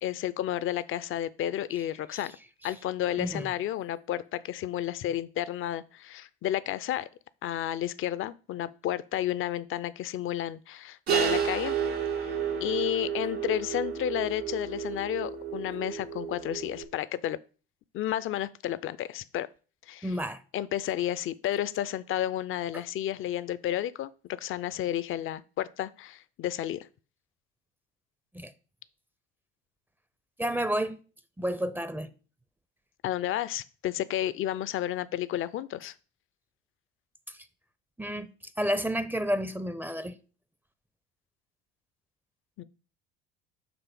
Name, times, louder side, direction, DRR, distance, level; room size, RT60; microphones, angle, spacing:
voice 1, 0.0-2.3 2.6-7.1 7.4-11.7 12.6-17.4 17.9-19.5 19.9-20.1 20.5-26.9 33.0-35.9 42.6-42.7, left 12 dB, 40° left, 0.6 m, -31 dB
voice 2, 3.2-3.5 20.0-20.4 22.7-22.8 28.3-28.5 30.4-31.0 31.4-32.1 37.3-37.4 38.0-38.3 38.6-40.2, equal, 5° right, 0.6 m, -30 dB
sound 1, 11.1-16.8, right 7 dB, 80° right, 1.5 m, -31 dB
7.1 x 3.1 x 6.0 m
hypercardioid pair, 60°, 31 cm